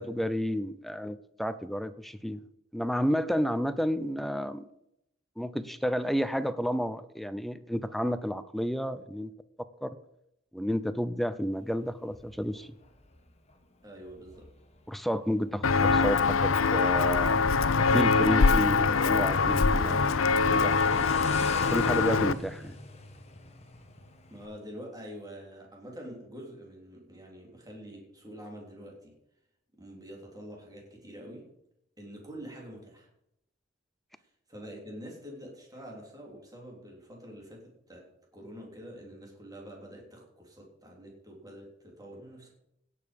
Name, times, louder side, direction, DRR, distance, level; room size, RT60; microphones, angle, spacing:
voice 1, 0.0-2.4 2.7-4.7 5.4-9.3 9.8-9.9 10.5-12.7 14.9-17.4 17.9-21.2 21.7-22.8, equal, ahead, 12 dB, 0.5 m, -31 dB
Motorcycle, 11.5-24.5, left 2 dB, 35° left, 1.4 m, -46 dB
voice 2, 13.8-14.5 24.3-29.2 29.8-31.5 32.0-33.1 34.5-42.5, equal, 20° right, -1 dB, 3.3 m, -46 dB
Walk footsteps, 15.6-22.3, left 4 dB, 80° left, 0.6 m, -23 dB
17.0 x 6.8 x 5.3 m, 0.79 s
head